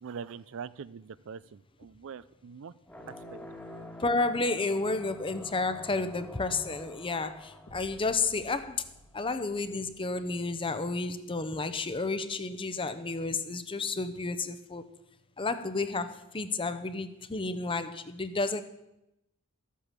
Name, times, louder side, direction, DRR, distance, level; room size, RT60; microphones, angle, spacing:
voice 1, 0.0-2.7 3.1-3.4, right 6 dB, 60° right, 0.4 m, -43 dB
sound 1, 2.9-9.0, left 1 dB, 10° left, 1.5 m, -48 dB
voice 2, 4.0-8.8 9.1-14.8 15.4-18.6, left 3 dB, 25° left, 0.7 m, -31 dB
sound 2, 7.7-11.7, right 1 dB, 55° left, 1.7 m, -57 dB
13.5 x 8.4 x 7.4 m
head